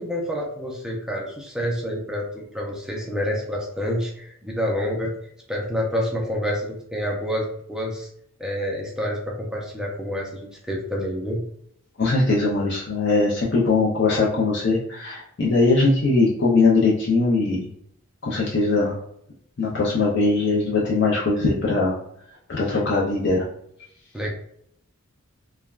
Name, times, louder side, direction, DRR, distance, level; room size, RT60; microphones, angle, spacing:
voice 1, 0.0-5.1 5.5-8.1 8.4-11.4 24.1-24.3, equal, 5° right, -1 dB, 0.4 m, -28 dB
voice 2, 12.0-17.7 18.2-19.0 19.6-21.9 22.5-23.4, left 3 dB, 50° left, -5 dB, 0.5 m, -21 dB
3.3 x 2.2 x 2.3 m, 0.69 s
head